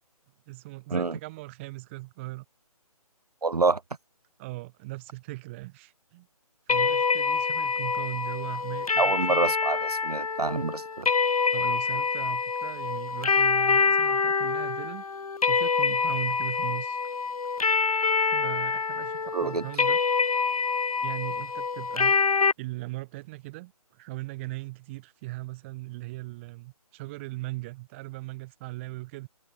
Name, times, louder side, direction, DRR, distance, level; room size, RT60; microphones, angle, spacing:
voice 1, 0.5-2.4 4.4-6.3 6.7-9.4 11.5-15.0 15.5-17.0 18.2-20.0 21.0-22.1 22.6-29.3, right 21 dB, 20° right, 2.8 m, -39 dB
voice 2, 3.4-3.8 9.0-11.1 19.3-19.7, right 4 dB, 80° right, 3.0 m, -27 dB
sound 1, 6.7-22.5, left 5 dB, 65° left, 2.6 m, -26 dB
hypercardioid pair, 160°, 19 cm